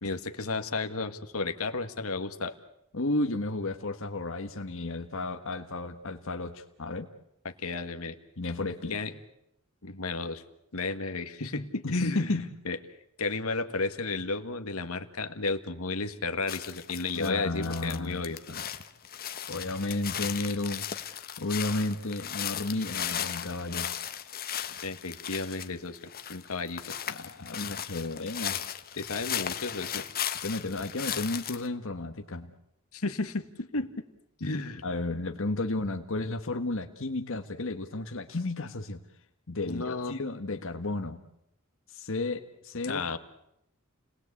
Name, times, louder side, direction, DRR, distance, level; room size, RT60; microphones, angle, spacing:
voice 1, 0.0-2.5 7.4-8.1 8.9-9.1 9.8-10.4 10.7-12.3 12.6-12.8 13.2-18.4 24.8-26.0 26.3-26.9 29.0-30.0 32.9-33.9 34.4-34.8 39.6-40.1 42.9-43.2, left 3 dB, 85° left, 8 dB, 1.7 m, -33 dB
voice 2, 2.9-7.1 8.4-8.9 11.8-12.5 17.1-18.6 19.5-23.9 27.1-28.6 30.4-32.5 34.8-39.0 39.5-41.2 41.9-43.0, left 2 dB, 65° left, 5 dB, 1.5 m, -33 dB
sound 1, 16.5-17.3 17.6-31.7, left 10 dB, 45° left, 1.3 m, -36 dB
30.0 x 20.0 x 8.4 m, 0.80 s
head